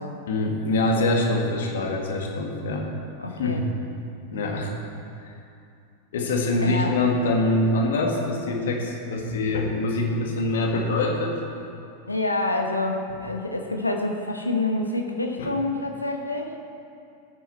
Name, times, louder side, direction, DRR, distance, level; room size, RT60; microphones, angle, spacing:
voice 1, 0.3-2.9 3.4-3.7 4.3-4.8 6.1-11.4 15.4-15.5, left 2 dB, 60° left, 2 dB, 1.7 m, -24 dB
voice 2, 3.2-3.7 6.6-7.0 12.1-16.5, left 2 dB, 85° left, 3 dB, 0.9 m, -27 dB
14.5 x 9.2 x 4.4 m, 2.5 s
figure-of-eight pair, 90°, 0 cm